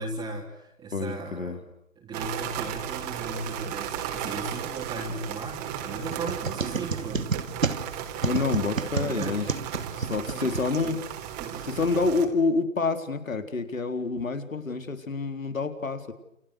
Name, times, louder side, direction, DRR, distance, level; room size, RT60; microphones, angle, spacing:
voice 1, 0.0-1.6 2.0-7.4 9.0-9.4 10.0-11.0 11.4-11.9, right 3 dB, 10° right, -3 dB, 3.7 m, -37 dB
voice 2, 0.9-1.6 8.2-9.5 10.0-11.0 11.6-16.1, left 3 dB, 85° left, 8 dB, 4.2 m, -28 dB
sound 1, 2.1-12.3, right 10 dB, 30° right, 4.1 m, -35 dB
sound 2, 6.1-11.2, right 4 dB, 85° right, 2.8 m, -31 dB
29.0 x 29.0 x 6.6 m, 0.82 s
hypercardioid pair, 140°, 39 cm